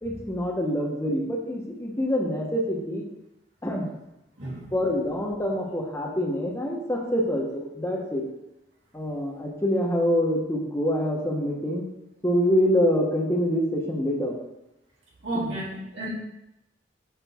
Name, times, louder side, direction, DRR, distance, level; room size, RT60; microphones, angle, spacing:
voice 1, 0.0-3.0 3.6-3.9 4.7-8.2 8.9-11.9 12.2-14.3 15.3-15.6, equal, 15° left, -1 dB, 0.9 m, -26 dB
voice 2, 15.2-16.1, right 1 dB, 90° right, -7 dB, 2.3 m, -31 dB
6.0 x 5.2 x 3.5 m, 0.90 s
head